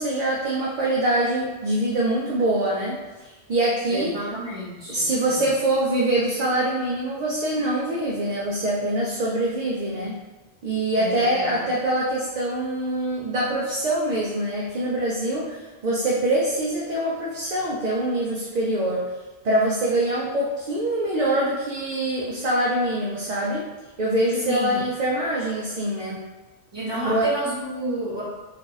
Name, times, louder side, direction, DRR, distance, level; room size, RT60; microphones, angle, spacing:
voice 1, 0.0-4.1 4.9-10.2 10.6-19.1 19.4-23.7 24.0-26.2 27.0-27.3, right 1 dB, 50° right, -4 dB, 0.6 m, -24 dB
voice 2, 3.9-5.5 10.9-11.6 24.4-24.8 26.7-28.2, right 2 dB, 25° right, -8 dB, 1.1 m, -30 dB
2.6 x 2.4 x 3.8 m, 1.2 s
omnidirectional pair, 1.0 m